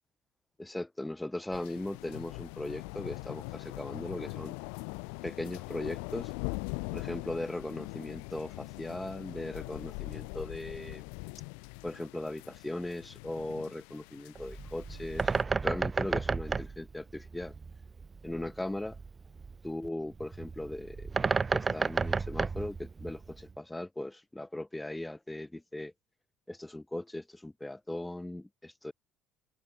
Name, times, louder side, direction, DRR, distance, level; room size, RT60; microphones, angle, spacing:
voice 1, 0.6-4.5 5.2-6.3 6.9-11.0 11.8-15.3 15.6-17.5 18.2-19.0 19.6-21.1 21.5-25.9 26.5-28.9, left 1 dB, 10° left, 1.2 m, -38 dB
sound 1, 1.5-15.4, left 40 dB or more, 85° left, 0.8 m, -42 dB
Bird, 14.3-23.5, right 4 dB, 25° right, 2.6 m, -33 dB
supercardioid pair, 85°, 0 cm